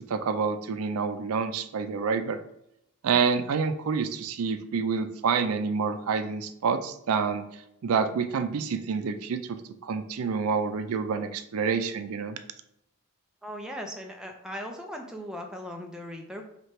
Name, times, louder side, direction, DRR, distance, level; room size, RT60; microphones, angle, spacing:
voice 1, 0.0-2.4 3.0-7.4 7.8-9.6 9.8-12.4, right 5 dB, 80° right, 9 dB, 0.4 m, -28 dB
voice 2, 13.4-16.4, equal, 5° right, 2 dB, 0.4 m, -38 dB
3.1 x 2.9 x 4.3 m, 0.80 s
head